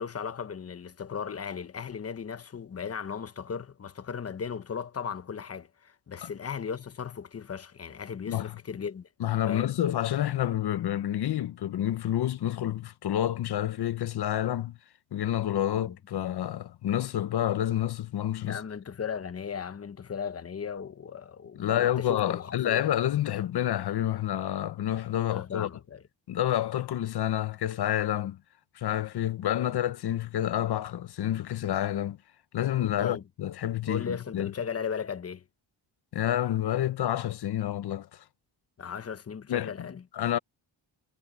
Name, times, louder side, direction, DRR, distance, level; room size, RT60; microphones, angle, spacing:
voice 1, 0.0-9.1 9.5-9.7 15.7-16.0 18.4-22.8 25.3-26.0 32.8-33.2 33.9-35.4 38.8-40.0, left 6 dB, 35° left, 1.0 m, -36 dB
voice 2, 8.3-8.6 9.2-14.8 15.1-18.6 21.6-25.7 26.3-28.4 28.7-32.2 32.5-34.5 36.1-38.2 39.5-39.9 40.1-40.4, left 12 dB, 60° left, 0.8 m, -29 dB
wide cardioid pair, 175°, 44 cm